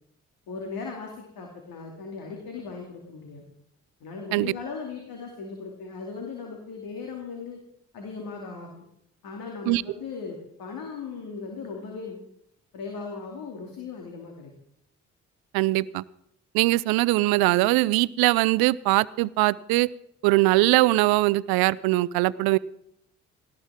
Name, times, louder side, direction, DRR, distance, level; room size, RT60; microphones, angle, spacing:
voice 1, 0.5-3.4 4.0-7.6 7.9-8.8 9.2-12.2 12.7-14.5, left 4 dB, 65° left, 1 dB, 2.7 m, -38 dB
voice 2, 15.5-16.0 16.5-19.9 20.2-22.6, right 19 dB, 75° right, 21 dB, 0.5 m, -21 dB
18.0 x 15.5 x 3.7 m, 0.75 s
hypercardioid pair, 45°, 37 cm